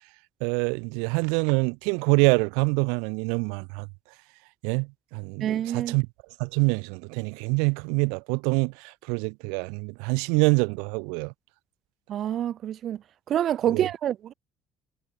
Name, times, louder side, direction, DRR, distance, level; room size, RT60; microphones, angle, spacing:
voice 1, 0.4-3.9 4.6-6.1 6.4-11.3 13.6-13.9, right 38 dB, 90° right, 2.4 m, -25 dB
voice 2, 5.4-5.9 12.1-13.0 13.3-14.3, right 10 dB, 55° right, 1.4 m, -27 dB
supercardioid pair, 90°, 0 cm